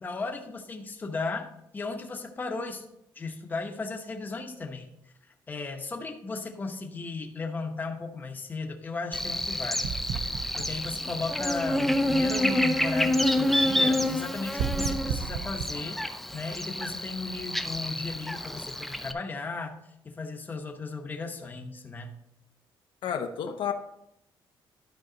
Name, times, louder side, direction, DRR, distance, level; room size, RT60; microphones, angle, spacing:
voice 1, 0.0-2.8 3.1-4.9 5.5-9.9 10.6-16.0 16.3-19.8 20.0-22.1, left 3 dB, 20° left, 0.9 m, -35 dB
Buzz, 9.1-19.1, left 1 dB, ahead, 0.4 m, -28 dB
sound 1, 9.8-11.7 14.6-15.7, right 7 dB, 70° right, 0.5 m, -33 dB
voice 2, 23.0-23.7, left 8 dB, 70° left, 0.8 m, -30 dB
11.5 x 5.4 x 3.9 m
cardioid pair, 160°, 9 cm